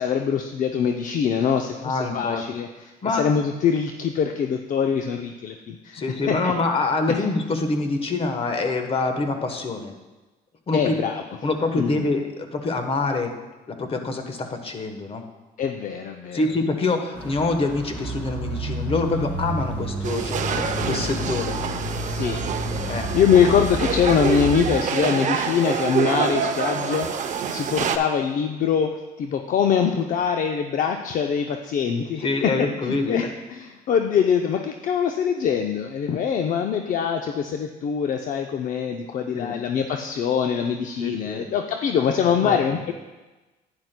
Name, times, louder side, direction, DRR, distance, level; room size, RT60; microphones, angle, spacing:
voice 1, 0.0-2.7 3.0-6.0 6.3-6.5 7.1-7.2 10.7-11.2 11.7-12.1 15.6-16.4 22.1-22.4 22.8-28.9 29.2-32.3 32.8-42.9, left 7 dB, 50° left, 4 dB, 0.5 m, -23 dB
voice 2, 1.8-2.4 3.0-3.2 5.9-9.9 10.7-10.9 11.4-13.3 13.7-15.3 16.3-21.6 22.9-23.1 32.2-33.3 39.3-39.5 41.0-41.4 42.4-42.8, left 3 dB, 35° left, 6 dB, 1.1 m, -25 dB
sound 1, 17.2-24.7, equal, 10° left, 2.2 m, -30 dB
sound 2, 20.0-28.0, right 7 dB, 45° right, 0.6 m, -26 dB
10.5 x 9.6 x 2.2 m, 1.2 s
cardioid pair, 110°, 17 cm